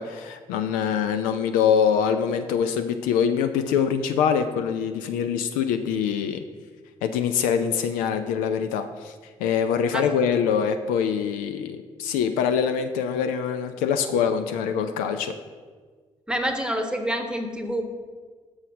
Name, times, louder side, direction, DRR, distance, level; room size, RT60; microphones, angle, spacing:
voice 1, 0.0-6.4 7.0-9.1 9.4-15.3, left 7 dB, 60° left, 8 dB, 0.4 m, -24 dB
voice 2, 16.3-17.8, equal, 5° right, 5 dB, 1.1 m, -27 dB
6.3 x 5.6 x 6.2 m, 1.5 s
figure-of-eight pair, 40°, 15 cm